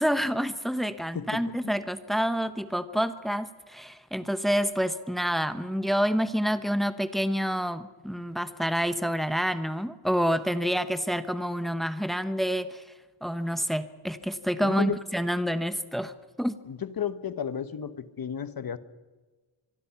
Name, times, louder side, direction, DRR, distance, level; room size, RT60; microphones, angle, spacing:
voice 1, 0.0-12.8 13.2-16.1 16.4-16.6, equal, ahead, 11 dB, 1.0 m, -28 dB
voice 2, 1.1-1.7 14.6-15.0 16.7-18.8, left 8 dB, 50° left, 13 dB, 1.2 m, -33 dB
25.0 x 23.0 x 5.9 m, 1.3 s
wide cardioid pair, 170°, 46 cm